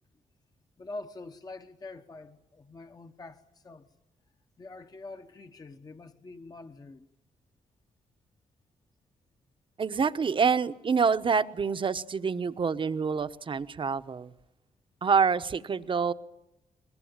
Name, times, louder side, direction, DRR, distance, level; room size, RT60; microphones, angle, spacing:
voice 1, 0.8-3.9 4.6-7.1, left 2 dB, 30° left, 7 dB, 1.0 m, -45 dB
voice 2, 9.8-14.3 15.0-16.1, right 5 dB, 40° right, 12 dB, 0.9 m, -27 dB
22.5 x 21.0 x 8.8 m, 0.90 s
cardioid pair, 115°, 14 cm